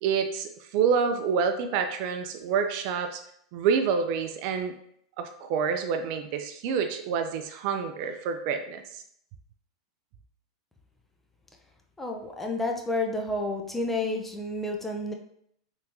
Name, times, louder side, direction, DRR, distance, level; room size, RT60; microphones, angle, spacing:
voice 1, 0.0-3.2 3.5-4.7 5.2-9.0, right 6 dB, 50° right, 7 dB, 0.3 m, -27 dB
voice 2, 12.0-15.1, left 2 dB, 10° left, 2 dB, 0.5 m, -30 dB
3.4 x 2.7 x 2.9 m, 0.69 s
hypercardioid pair, 95°, 3 cm